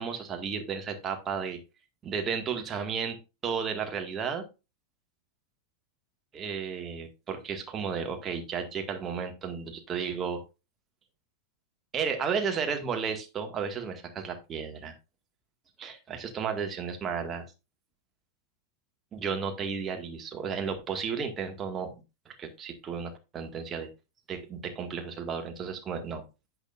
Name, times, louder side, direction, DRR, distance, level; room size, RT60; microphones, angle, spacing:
voice 1, 0.0-1.6 2.0-3.2 3.4-4.5 6.3-10.4 11.9-15.0 15.8-17.4 19.1-21.9 22.3-23.9 24.3-26.2, right 6 dB, 25° right, 5 dB, 1.9 m, -33 dB
10.5 x 7.9 x 2.6 m, 0.27 s
figure-of-eight pair, 90°, 0 cm